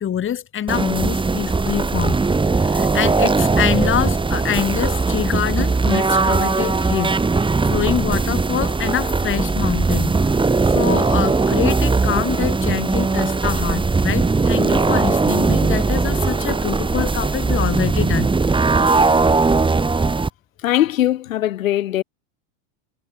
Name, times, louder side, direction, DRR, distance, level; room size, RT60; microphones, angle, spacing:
voice 1, 0.0-2.2 2.5-7.1 7.7-10.1 10.6-18.3, left 9 dB, 30° left, 6.9 m, -25 dB
sound 1, 0.7-20.3, right 3 dB, 10° right, 6.7 m, -19 dB
voice 2, 20.6-22.0, left 13 dB, 85° left, 7.2 m, -20 dB
supercardioid pair, 115°, 39 cm